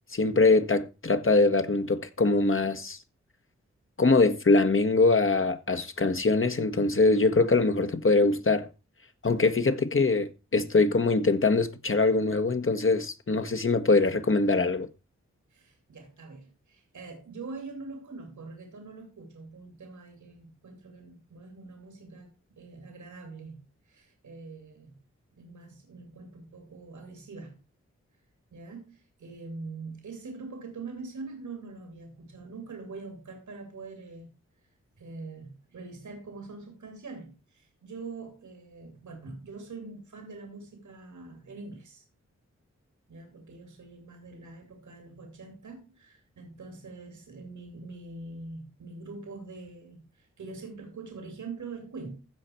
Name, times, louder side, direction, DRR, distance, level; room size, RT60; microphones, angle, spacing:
voice 1, 0.1-3.0 4.0-8.7 9.2-14.9, left 3 dB, 45° left, 1.6 m, -23 dB
voice 2, 15.5-25.0 25.3-27.6 28.5-34.3 35.0-42.0 43.1-52.2, right 3 dB, 80° right, 2.7 m, -44 dB
15.0 x 5.1 x 4.5 m
cardioid pair, 40°, 29 cm